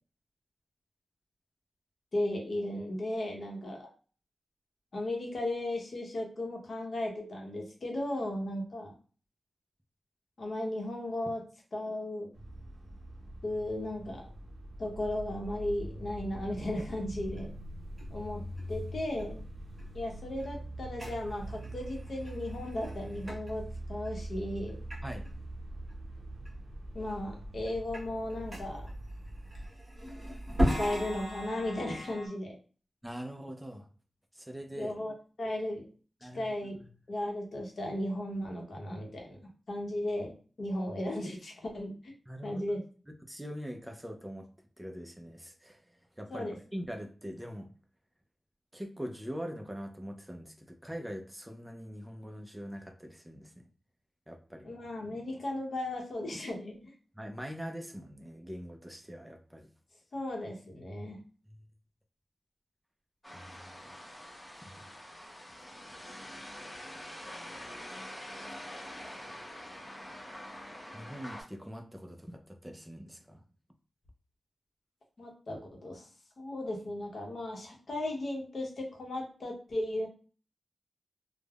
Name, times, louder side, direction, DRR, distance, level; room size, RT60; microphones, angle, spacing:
voice 1, 2.1-3.9 4.9-8.9 10.4-11.4 11.7-12.3 13.4-14.3 14.8-17.5 18.1-19.4 19.9-24.8 26.9-28.9 30.8-32.6 34.8-35.1 35.4-35.9 36.2-36.8 37.1-40.3 40.6-42.1 42.4-42.8 46.3-46.6 54.6-56.9 60.1-61.2 75.2-76.1 76.4-80.1, left 1 dB, 55° left, 1 dB, 0.7 m, -36 dB
sound 1, 12.3-29.7, right 1 dB, 70° right, 0.5 m, -43 dB
sound 2, 16.3-19.8 20.3-20.5 21.0-21.3 21.5-23.5 24.1-24.2 24.9-25.0 25.3-25.4 25.9-26.0 26.4-27.1 27.4-32.3, equal, 25° right, 1.0 m, -37 dB
voice 2, 33.0-33.9 34.3-34.9 36.2-36.8 42.3-42.6 43.2-44.5 44.8-45.8 46.2-47.7 48.7-53.7 54.3-54.7 57.2-59.7 61.5-61.6 63.3-63.9 64.6-64.8 70.9-73.4, equal, 5° right, 4 dB, 0.4 m, -43 dB
sound 3, 63.2-71.4, equal, 15° left, 0.8 m, -45 dB
3.3 x 2.0 x 2.3 m, 0.39 s
wide cardioid pair, 145°, 0 cm